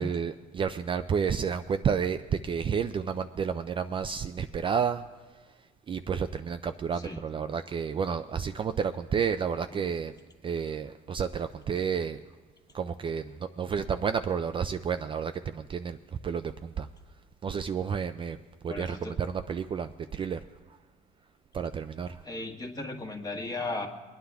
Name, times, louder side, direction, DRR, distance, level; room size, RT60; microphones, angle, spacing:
voice 1, 0.0-5.1 5.9-10.1 10.4-12.2 12.7-16.0 16.2-16.9 17.4-18.4 18.6-20.4 20.7-20.8 21.5-22.2, right 7 dB, 30° right, 8 dB, 0.3 m, -31 dB
voice 2, 18.7-19.1 22.2-23.9, left 2 dB, 20° left, 3 dB, 1.5 m, -36 dB
23.5 x 9.6 x 3.4 m, 1.3 s
cardioid pair, 110°, 17 cm